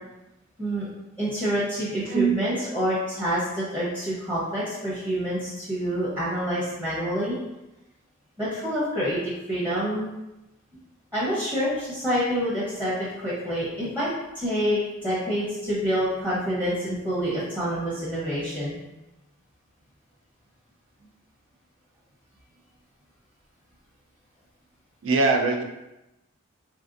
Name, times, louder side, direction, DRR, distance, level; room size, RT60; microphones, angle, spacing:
voice 1, 1.2-7.4 8.4-10.1 11.1-14.1 14.4-18.7, equal, 15° right, -9 dB, 0.8 m, -27 dB
voice 2, 25.0-25.6, right 4 dB, 80° right, 3 dB, 0.4 m, -21 dB
3.2 x 2.7 x 2.4 m, 0.96 s
head